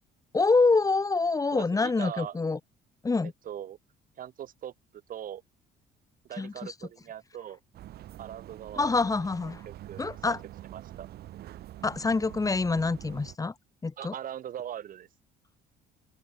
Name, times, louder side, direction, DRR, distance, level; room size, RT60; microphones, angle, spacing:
voice 1, 0.3-2.6 3.0-3.3 6.4-6.7 8.8-9.6 10.0-10.4 11.8-13.5 13.8-14.1, left 3 dB, 20° left, 2.3 m, -26 dB
voice 2, 1.5-2.4 3.4-3.8 4.2-5.4 6.3-7.6 8.2-9.1 9.4-10.4 10.7-11.1 14.0-15.1, right 10 dB, 55° right, 2.5 m, -41 dB
sound 1, 7.7-13.4, right 13 dB, 70° right, 5.4 m, -45 dB
open air
cardioid pair, 110°, 17 cm